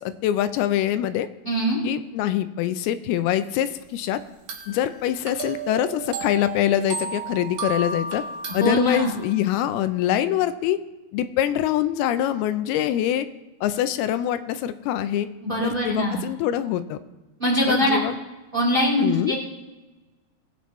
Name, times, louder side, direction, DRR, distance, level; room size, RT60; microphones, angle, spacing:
voice 1, 0.0-1.3 1.8-4.2 4.7-8.2 8.5-10.8 11.1-13.3 13.6-15.3 15.6-17.0 17.7-18.2 19.0-19.4, left 11 dB, 85° left, 11 dB, 2.5 m, -24 dB
voice 2, 1.4-1.8 8.6-9.1 15.4-16.2 17.4-18.0 18.5-19.3, equal, 15° right, -2 dB, 2.0 m, -22 dB
sound 1, 4.5-9.4, right 4 dB, 55° right, 1.9 m, -33 dB
19.5 x 9.5 x 3.1 m, 1.1 s
omnidirectional pair, 4.5 m